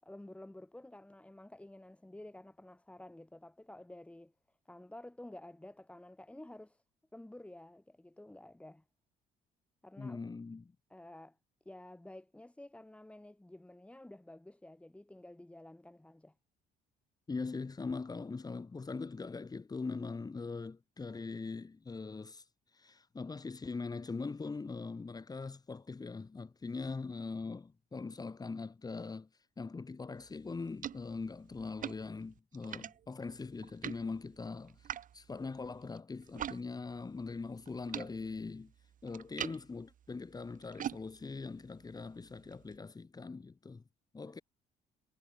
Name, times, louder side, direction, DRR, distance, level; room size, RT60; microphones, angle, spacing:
voice 1, 0.0-4.3 4.7-6.8 7.1-8.8 9.8-10.2 10.9-11.4 11.7-16.4 44.2-44.3, left 1 dB, 5° left, 7.1 m, -51 dB
voice 2, 10.0-10.7 17.3-38.7 39.0-43.8 44.1-44.4, left 4 dB, 20° left, 5.5 m, -42 dB
sound 1, 30.2-36.6 36.9-42.8, right 10 dB, 50° right, 2.6 m, -46 dB
cardioid pair, 110°, 17 cm